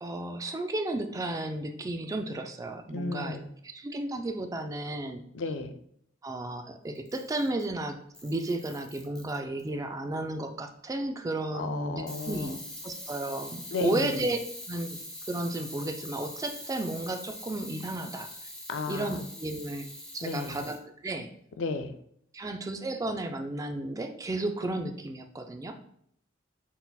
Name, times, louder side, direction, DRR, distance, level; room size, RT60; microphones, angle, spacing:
voice 1, 0.0-3.4 3.7-5.2 6.2-12.6 12.8-14.4 14.7-15.0 15.3-18.3 18.9-19.9 20.1-21.3 22.3-25.8, right 2 dB, 15° right, 6 dB, 0.3 m, -33 dB
voice 2, 2.9-3.5 5.3-5.7 11.5-12.6 13.7-14.2 18.7-19.2 20.2-20.6 21.6-22.0, left 3 dB, 65° left, 8 dB, 0.4 m, -33 dB
Camera, 6.9-7.7 8.1-9.7 12.1-20.8, left 1 dB, 5° left, 0.7 m, -43 dB
4.1 x 3.9 x 2.3 m, 0.69 s
head